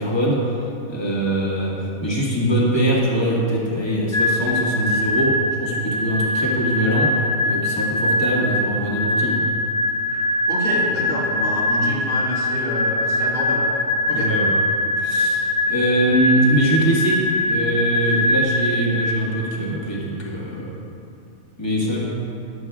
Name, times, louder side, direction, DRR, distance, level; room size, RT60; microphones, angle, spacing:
voice 1, 0.0-9.5 14.1-14.6 15.0-20.8 21.6-22.1, right 1 dB, 20° left, -5 dB, 1.8 m, -22 dB
sound 1, 4.1-19.7, left 1 dB, 70° left, 1.6 m, -22 dB
voice 2, 10.5-13.6 14.1-14.3, left 1 dB, 40° left, -9 dB, 2.5 m, -27 dB
15.0 x 11.0 x 2.4 m, 2.7 s
omnidirectional pair, 1.4 m